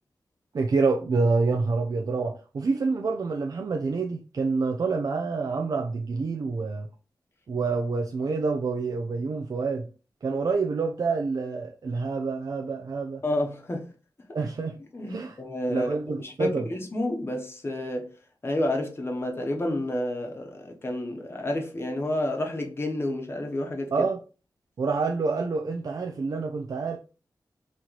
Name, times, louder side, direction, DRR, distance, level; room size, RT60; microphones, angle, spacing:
voice 1, 0.5-6.9 7.5-9.9 10.2-13.2 14.3-14.8 15.1-15.4 15.7-16.7 23.9-24.2 24.8-27.0, right 4 dB, 55° right, 0.4 m, -27 dB
voice 2, 13.2-13.9 14.3-14.4 14.9-18.1 18.4-24.1, left 1 dB, 30° left, 0.8 m, -30 dB
3.0 x 2.9 x 3.8 m
wide cardioid pair, 95°, 8 cm